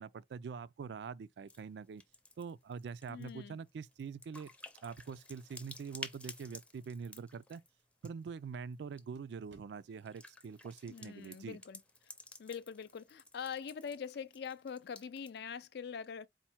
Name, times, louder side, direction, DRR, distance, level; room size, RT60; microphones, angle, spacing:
voice 1, 0.0-2.0 2.4-4.5 4.8-7.6 8.0-11.6, right 6 dB, 65° right, 0.3 m, -44 dB
sound 1, 1.5-1.6 1.9-8.3 8.7-9.0 9.9-15.5, left 2 dB, 5° left, 0.5 m, -53 dB
voice 2, 3.1-3.6 10.9-11.8 12.4-16.3, left 7 dB, 60° left, 0.4 m, -43 dB
sound 2, 5.0-10.2, right 3 dB, 85° right, 1.0 m, -73 dB
4.3 x 2.1 x 4.3 m
head